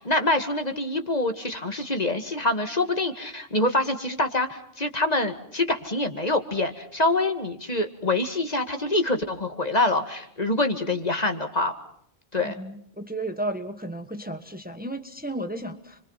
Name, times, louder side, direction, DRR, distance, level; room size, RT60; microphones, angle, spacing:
voice 1, 0.0-11.7 12.3-12.6, left 2 dB, 40° left, 6 dB, 2.2 m, -25 dB
voice 2, 12.4-16.0, right 1 dB, 10° right, 7 dB, 1.5 m, -33 dB
29.5 x 24.0 x 5.7 m, 0.69 s
omnidirectional pair, 1.0 m